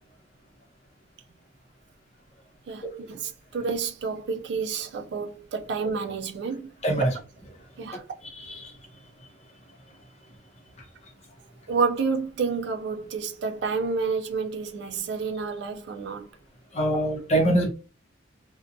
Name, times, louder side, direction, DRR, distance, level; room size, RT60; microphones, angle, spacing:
voice 1, 2.7-6.7 7.8-8.0 11.7-16.3, right 5 dB, 65° right, 0.4 m, -29 dB
voice 2, 6.8-7.1 8.4-8.7 16.7-17.7, right 1 dB, 35° left, 0.7 m, -23 dB
2.6 x 2.2 x 2.5 m
head